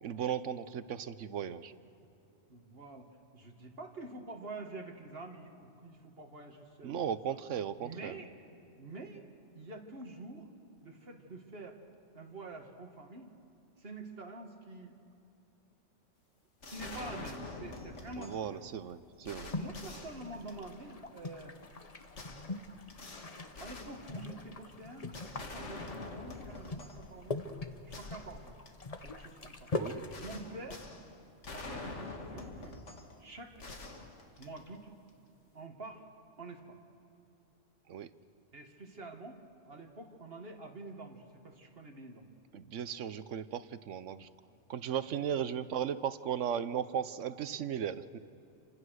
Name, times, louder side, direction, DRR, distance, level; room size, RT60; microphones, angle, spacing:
voice 1, 0.0-1.7 6.8-8.2 18.2-19.5 29.8-30.0 37.9-38.1 42.5-44.3 44.7-48.1, right 8 dB, 90° right, 14 dB, 1.2 m, -36 dB
voice 2, 2.5-7.0 7.8-8.3 8.8-9.3 9.5-10.5 10.8-11.8 12.1-13.3 13.8-15.0 16.7-18.7 19.5-21.6 23.6-27.4 27.9-28.5 29.0-29.7 30.1-30.9 31.5-32.8 33.2-33.5 34.4-34.9 35.5-36.1 36.4-36.8 38.5-39.4 39.6-42.2 45.3-45.6, right 2 dB, 55° right, 2 dB, 2.2 m, -47 dB
sound 1, 16.6-18.5 18.9-19.0 19.2-20.9 22.1-24.6 25.1-27.1 27.5-27.6 27.9-28.9 30.1-33.2 33.5-34.9, left 3 dB, 75° left, 2.3 m, -46 dB
sound 2, 19.4-30.2, left 2 dB, 35° left, 1.1 m, -43 dB
29.0 x 25.5 x 6.5 m, 2.6 s
omnidirectional pair, 1.2 m